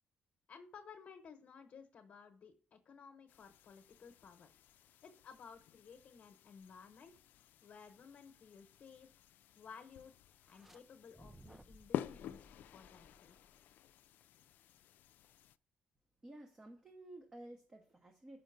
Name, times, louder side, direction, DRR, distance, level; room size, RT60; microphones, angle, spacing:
voice 1, 0.5-4.5 5.0-7.1 7.6-9.1 9.5-10.1 10.5-13.4, left 6 dB, 50° left, 1.0 m, -56 dB
sound 1, 3.3-15.6, left 11 dB, 75° left, 0.3 m, -49 dB
sound 2, 10.4-10.8 11.1-13.7, right 1 dB, 5° right, 0.4 m, -61 dB
voice 2, 16.2-18.4, right 1 dB, 20° right, 0.8 m, -53 dB
5.8 x 5.1 x 6.6 m
cardioid pair, 120°, 3 cm